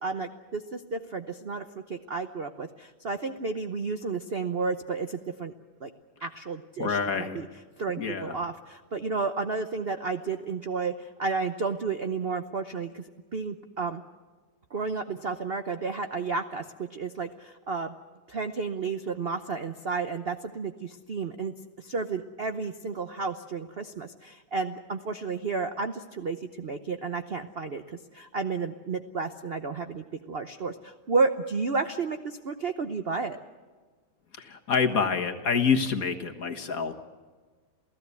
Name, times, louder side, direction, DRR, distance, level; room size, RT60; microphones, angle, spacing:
voice 1, 0.0-5.5 5.8-5.9 6.2-7.5 7.8-13.0 13.3-14.0 14.7-17.9 18.3-33.4, right 4 dB, 50° right, 8 dB, 0.7 m, -32 dB
voice 2, 6.8-7.4 8.0-8.4 34.4-36.9, left 5 dB, 45° left, 4 dB, 1.7 m, -27 dB
28.5 x 16.5 x 8.4 m, 1.4 s
omnidirectional pair, 2.2 m